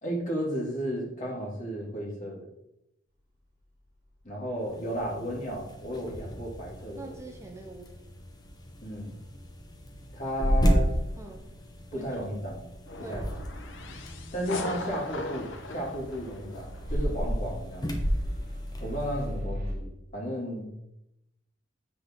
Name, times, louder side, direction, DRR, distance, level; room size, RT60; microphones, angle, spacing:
voice 1, 0.0-2.5 4.2-7.1 8.8-9.1 10.1-10.9 11.9-12.6 13.1-13.2 14.3-17.9 18.8-20.7, equal, 45° left, -3 dB, 2.4 m, -34 dB
sound 1, 3.2-19.7, left 1 dB, 50° right, 2.7 m, -45 dB
sound 2, 4.6-19.4, equal, 20° left, 1.0 m, -33 dB
voice 2, 6.9-7.8 11.2-11.5 11.9-12.3 13.0-13.3, right 2 dB, 15° right, 2 dB, 0.7 m, -44 dB
sound 3, 12.9-16.9, left 3 dB, 90° left, 0.9 m, -39 dB
7.5 x 5.9 x 3.7 m, 0.85 s
head